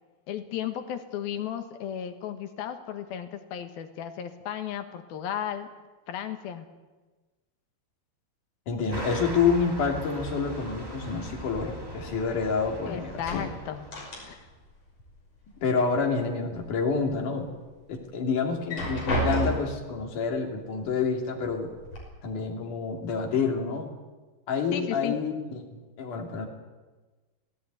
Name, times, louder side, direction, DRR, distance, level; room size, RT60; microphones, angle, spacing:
voice 1, 0.3-5.7 6.1-6.7 12.9-13.9 14.2-14.5 24.7-25.2, left 9 dB, 80° left, 7 dB, 3.3 m, -34 dB
voice 2, 8.7-13.6 15.6-17.5 17.9-21.7 22.2-23.9 24.5-26.5, left 5 dB, 60° left, 2 dB, 4.1 m, -28 dB
sound 1, 8.9-14.3, right 1 dB, 10° right, 1.8 m, -40 dB
sound 2, 11.5-12.8 13.1-14.7 14.9-15.9 16.4-17.1 17.6-17.7 18.5-19.9 20.8-20.9 21.4-22.0, right 1 dB, 40° left, 6.7 m, -33 dB
18.5 x 17.0 x 9.3 m, 1.3 s
omnidirectional pair, 4.2 m